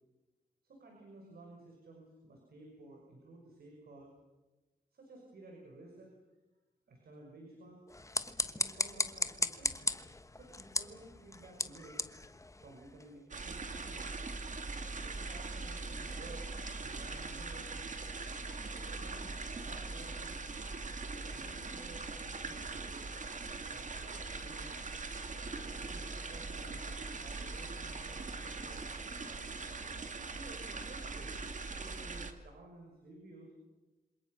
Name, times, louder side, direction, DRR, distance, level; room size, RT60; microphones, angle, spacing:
voice 1, 0.6-4.1 4.9-6.1 6.9-7.8 8.5-10.0 10.2-12.0 12.6-14.2 15.0-17.7 18.4-20.4 21.1-23.0 23.7-24.8 25.6-29.5 30.2-33.5, right 2 dB, 80° right, 1 dB, 6.0 m, -54 dB
sound 1, 7.9-13.2, left 2 dB, 20° left, 1.3 m, -37 dB
sound 2, 13.3-32.3, right 3 dB, 50° right, 2.5 m, -41 dB
28.0 x 26.5 x 6.5 m, 1.1 s
cardioid pair, 70°, 16 cm